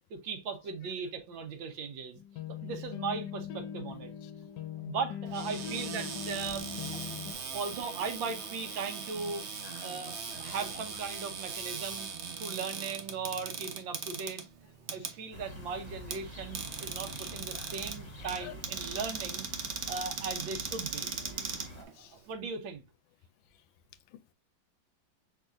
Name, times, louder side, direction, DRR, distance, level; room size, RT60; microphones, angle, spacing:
voice 1, 0.1-2.2 2.6-4.1 4.8-6.7 6.9-7.0 7.5-9.5 9.8-12.1 12.4-14.4 14.9-19.5 19.9-21.1 21.8-22.8, right 5 dB, 80° right, 1.6 m, -38 dB
sound 1, 2.2-7.3, left 9 dB, 70° left, 1.1 m, -41 dB
Cupboard open or close, 5.3-22.3, right 6 dB, 60° right, 0.7 m, -40 dB
voice 2, 7.1-7.4 9.7-10.0 10.3-10.5 17.5-17.7 18.4-18.5 22.0-22.1, left 14 dB, 90° left, 1.3 m, -50 dB
sound 2, 15.3-21.8, equal, 20° left, 0.8 m, -47 dB
4.9 x 4.0 x 2.5 m
omnidirectional pair, 2.1 m